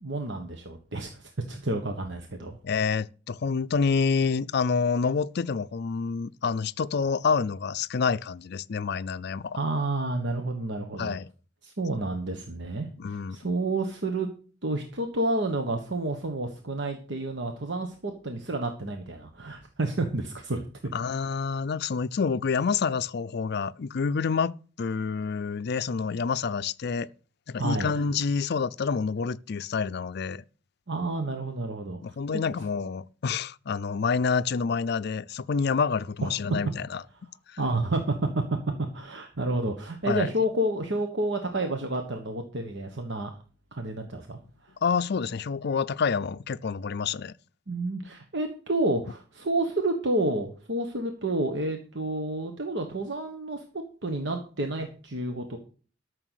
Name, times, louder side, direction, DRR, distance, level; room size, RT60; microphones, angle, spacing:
voice 1, 0.0-2.6 9.5-11.2 11.6-14.3 14.6-20.6 27.6-27.9 30.9-32.0 37.6-38.1 38.8-43.3 43.7-44.7 47.7-53.6 54.0-55.6, right 2 dB, 65° right, 1.3 m, -30 dB
voice 2, 2.6-9.6 11.0-11.3 13.0-13.4 20.9-27.1 27.5-30.4 32.0-37.0 40.1-40.3 44.8-47.3, left 5 dB, 60° left, 0.5 m, -28 dB
13.0 x 6.6 x 6.4 m
head